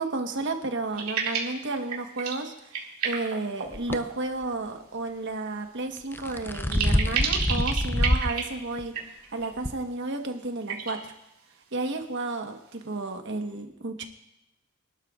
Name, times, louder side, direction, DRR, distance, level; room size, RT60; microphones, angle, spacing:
voice 1, 0.0-2.5 3.0-8.9 9.3-11.0 11.7-14.1, right 2 dB, 55° right, 5 dB, 1.3 m, -32 dB
sound 1, 0.9-1.6 1.9-2.4 2.7-4.2 6.5-8.5 8.9-9.5 10.7-11.0, right 6 dB, 85° right, 2.4 m, -30 dB
sound 2, 3.7-4.0 6.0-8.3 8.8-8.9 9.6-9.7, left 1 dB, 10° left, 0.4 m, -25 dB
25.0 x 12.0 x 2.5 m, 0.87 s
head